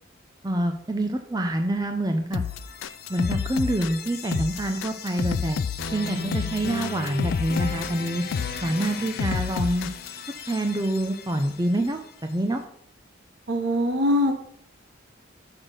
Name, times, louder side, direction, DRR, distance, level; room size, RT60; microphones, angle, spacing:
voice 1, 0.4-2.4 3.1-5.6 5.9-8.2 8.6-9.9 10.5-12.6, right 1 dB, 20° right, 5 dB, 0.5 m, -26 dB
sound 1, 2.3-10.1, left 6 dB, 80° left, 0.4 m, -29 dB
sound 2, 2.4-12.3, left 4 dB, 50° left, 0.8 m, -37 dB
voice 2, 13.5-14.3, left 1 dB, 60° right, 5 dB, 0.9 m, -22 dB
6.3 x 5.8 x 6.6 m, 0.66 s
head